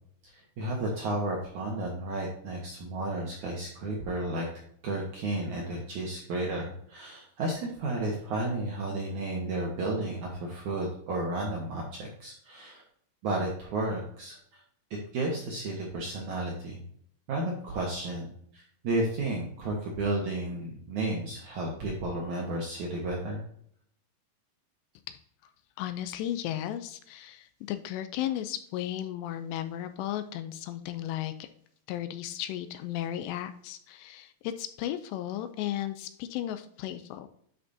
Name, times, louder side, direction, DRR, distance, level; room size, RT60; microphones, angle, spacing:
voice 1, 0.6-4.5 4.8-12.8 13.2-14.4 15.1-16.8 17.3-18.3 18.5-23.4, right 2 dB, 70° right, -2 dB, 1.9 m, -32 dB
voice 2, 25.8-31.5 31.9-37.3, left 12 dB, 80° left, 10 dB, 2.6 m, -35 dB
10.5 x 5.5 x 2.7 m, 0.65 s
omnidirectional pair, 5.1 m